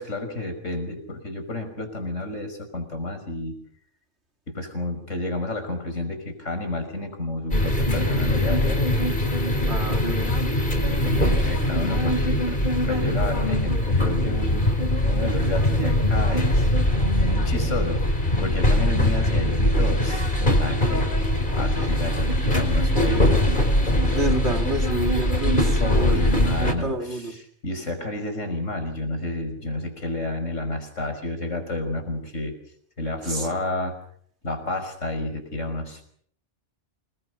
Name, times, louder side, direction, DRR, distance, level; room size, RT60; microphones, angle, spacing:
voice 1, 0.0-3.6 4.5-8.8 10.8-14.7 15.0-16.7 17.2-18.0 18.4-21.1 21.5-23.5 25.8-32.6 33.0-34.0 34.4-36.1, left 2 dB, 85° left, 7 dB, 6.1 m, -30 dB
sound 1, 7.5-26.7, left 1 dB, 40° left, 4.6 m, -22 dB
voice 2, 9.7-10.2 22.1-22.2 24.1-26.1 26.5-27.3 33.2-33.5, right 2 dB, 60° right, 5 dB, 3.2 m, -30 dB
28.0 x 21.5 x 6.9 m, 0.62 s
omnidirectional pair, 1.2 m